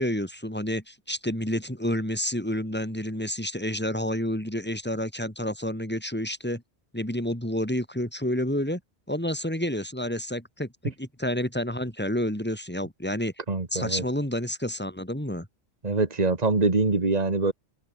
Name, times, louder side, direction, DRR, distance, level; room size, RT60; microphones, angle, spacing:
voice 1, 0.0-6.6 6.9-8.8 9.1-13.3 13.7-15.5, equal, 10° left, 4.7 m, -29 dB
voice 2, 13.5-14.0 15.8-17.5, right 3 dB, 35° right, 2.2 m, -24 dB
omnidirectional pair, 1.1 m